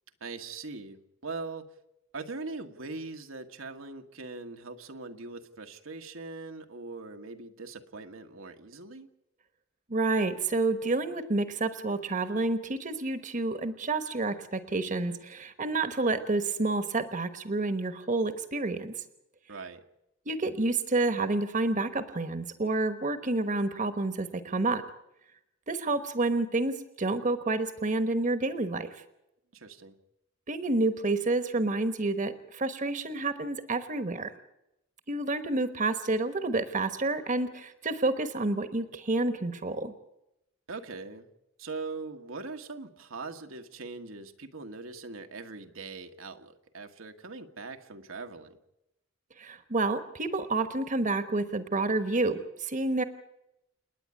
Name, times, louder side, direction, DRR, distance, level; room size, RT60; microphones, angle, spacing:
voice 1, 0.2-1.7 2.1-9.1 19.5-19.8 29.5-30.0 40.7-41.3 41.6-48.6, right 3 dB, 80° right, 5 dB, 1.5 m, -41 dB
voice 2, 9.9-19.0 20.3-24.8 25.7-29.0 30.5-34.3 35.1-39.9 49.4-53.0, right 2 dB, 40° right, 10 dB, 1.1 m, -29 dB
29.0 x 9.8 x 9.6 m, 0.88 s
head